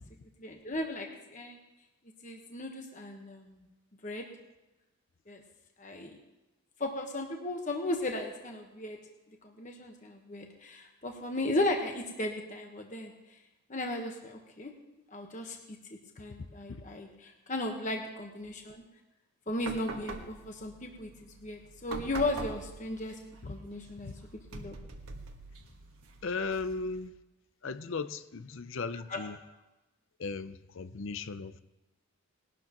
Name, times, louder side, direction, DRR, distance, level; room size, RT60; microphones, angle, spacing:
voice 1, 0.4-1.6 2.2-3.6 4.0-4.2 5.3-5.4 5.8-6.2 6.8-9.0 9.6-13.1 13.7-14.7 15.1-15.6 16.2-18.8 19.5-23.1 23.4-24.1 24.5-24.8 28.9-29.3, left 1 dB, 35° left, 3 dB, 1.2 m, -36 dB
sound 1, 19.6-27.1, right 2 dB, 90° right, 1.4 m, -45 dB
voice 2, 26.2-27.1 27.6-29.4 30.2-31.6, left 4 dB, 60° left, 13 dB, 0.6 m, -36 dB
20.5 x 11.5 x 3.0 m, 1.0 s
head